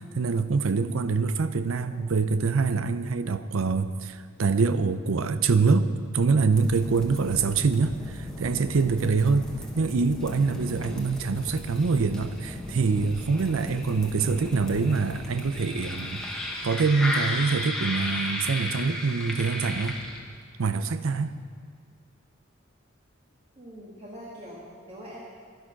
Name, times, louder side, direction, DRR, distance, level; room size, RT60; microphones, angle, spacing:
voice 1, 0.0-9.5 9.8-16.2 16.6-20.0 20.6-21.4, right 4 dB, 90° right, 12 dB, 0.6 m, -25 dB
sound 1, 6.5-20.4, left 1 dB, 5° left, 1.3 m, -35 dB
voice 2, 8.3-8.6 23.6-25.2, equal, 30° right, -6 dB, 1.9 m, -44 dB
11.5 x 11.0 x 5.8 m, 2.1 s
head